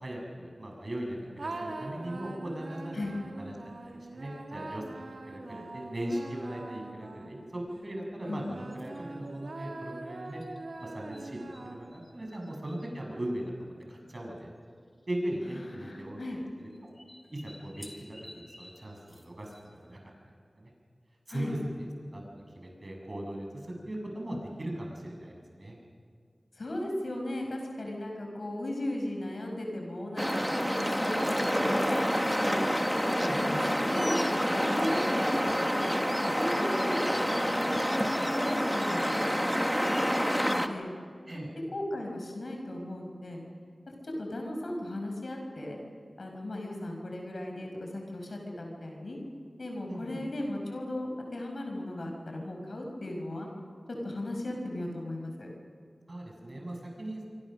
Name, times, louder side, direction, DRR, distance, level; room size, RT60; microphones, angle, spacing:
voice 1, 0.0-3.0 3.4-10.4 10.8-14.5 15.1-16.2 16.6-16.7 17.3-17.8 18.3-19.5 19.8-20.1 20.6-20.7 21.3-25.8 33.2-33.6 41.3-41.5 49.9-50.2 56.1-57.3, right 1 dB, 50° right, 0 dB, 7.2 m, -38 dB
sound 1, 1.4-7.6 8.2-12.1, right 2 dB, 85° right, 2.4 m, -43 dB
sound 2, 8.7-9.1 10.4-11.7 11.9-12.9 13.8-13.9 14.1-14.2 15.1-15.4 16.7-19.9, left 1 dB, 20° left, 4.5 m, -53 dB
voice 2, 15.5-16.4 21.3-21.5 26.6-32.6 33.0-35.9 36.2-40.9 41.7-43.4 43.9-45.8 46.2-49.2 49.6-53.5 54.0-55.5, left 1 dB, 80° left, 2 dB, 5.5 m, -36 dB
sound 3, 30.2-40.7, equal, ahead, 1.7 m, -28 dB
26.0 x 25.0 x 6.5 m, 2.1 s
wide cardioid pair, 45°, 0 cm